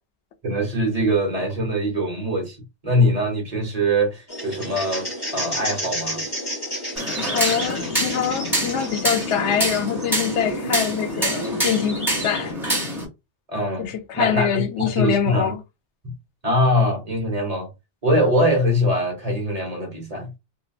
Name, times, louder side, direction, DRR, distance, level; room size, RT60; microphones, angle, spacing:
voice 1, 0.4-2.6 2.8-6.2 13.5-13.9 14.1-15.5 16.4-17.7 18.0-20.3, equal, 35° right, 1.0 m, -22 dB
sound 1, 4.3-12.5, equal, 20° left, 1.3 m, -31 dB
sound 2, 7.0-13.1, equal, ahead, 1.4 m, -26 dB
voice 2, 7.2-12.5 13.8-15.6, left 8 dB, 90° left, 0.9 m, -24 dB
2.7 x 2.5 x 2.4 m
omnidirectional pair, 1.1 m